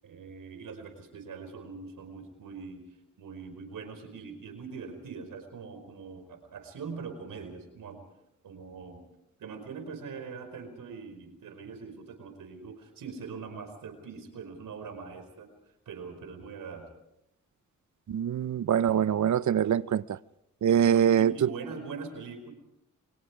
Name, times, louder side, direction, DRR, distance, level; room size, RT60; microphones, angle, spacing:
voice 1, 0.0-2.8 3.2-8.0 8.4-9.0 9.4-15.5 15.8-16.8 20.8-22.5, right 5 dB, 90° right, 4.8 m, -42 dB
voice 2, 18.1-20.2 20.6-21.3, right 9 dB, 65° right, 0.7 m, -24 dB
29.0 x 23.0 x 4.9 m
cardioid pair, 60°, 32 cm